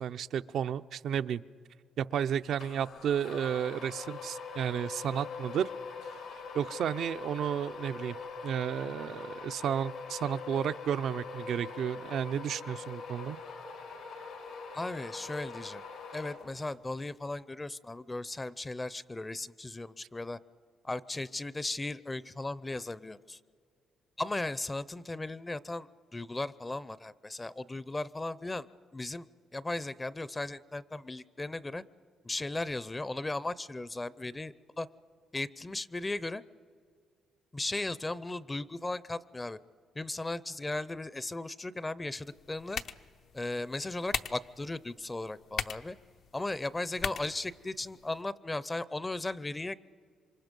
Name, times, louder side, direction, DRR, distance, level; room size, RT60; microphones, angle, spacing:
voice 1, 0.0-1.4 2.0-5.7 6.5-8.2 8.4-13.4, right 9 dB, 70° right, 13 dB, 0.5 m, -32 dB
sound 1, 2.6-16.9, left 5 dB, 90° left, 3.8 m, -43 dB
voice 2, 14.7-15.8 16.1-20.4 20.8-23.4 24.2-28.7 28.9-29.3 29.5-31.8 32.2-34.9 35.3-36.4 37.5-39.6 40.0-42.8 43.3-46.0 46.3-49.7, left 2 dB, 20° left, 18 dB, 0.6 m, -36 dB
sound 2, 42.2-48.2, left 7 dB, 65° left, 0.7 m, -41 dB
27.5 x 24.5 x 5.3 m, 2.1 s
cardioid pair, 90°, 0 cm